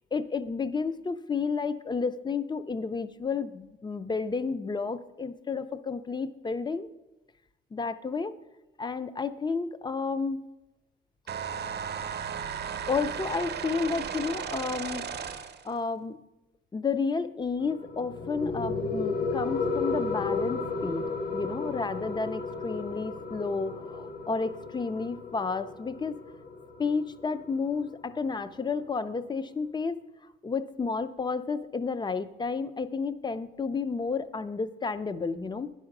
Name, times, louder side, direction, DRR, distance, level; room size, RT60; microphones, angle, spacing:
voice 1, 0.1-6.9 7.7-8.3 8.8-10.4 12.9-15.0 15.6-16.2 16.7-26.2 26.8-30.0 30.4-35.7, left 4 dB, 20° left, 13 dB, 0.5 m, -31 dB
sound 1, 11.3-15.7, right 7 dB, 55° right, 0.8 m, -35 dB
sound 2, 17.6-28.6, left 3 dB, 50° left, 1.2 m, -34 dB
9.6 x 4.9 x 6.5 m, 1.0 s
cardioid pair, 90°, 20 cm